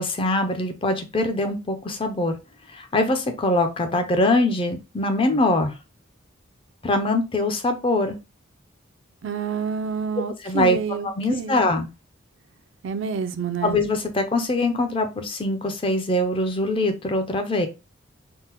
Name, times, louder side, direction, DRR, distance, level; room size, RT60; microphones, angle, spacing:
voice 1, 0.0-2.3 2.7-5.7 6.8-8.2 10.4-10.8 11.0-11.9 13.6-17.7, left 2 dB, 25° left, 0.4 m, -23 dB
voice 2, 9.2-11.7 12.8-13.8, right 6 dB, 60° right, 0.3 m, -28 dB
3.5 x 2.0 x 2.8 m
head